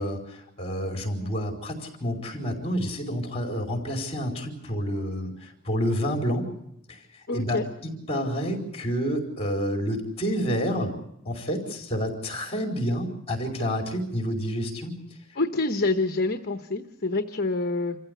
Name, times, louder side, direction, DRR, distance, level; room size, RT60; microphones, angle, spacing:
voice 1, 0.0-6.5 6.9-7.0 7.3-10.9 11.2-15.0, equal, 30° left, 2 dB, 4.5 m, -29 dB
voice 2, 7.3-7.6 15.4-18.0, left 3 dB, 45° left, 7 dB, 1.0 m, -26 dB
27.0 x 15.0 x 8.3 m, 0.79 s
head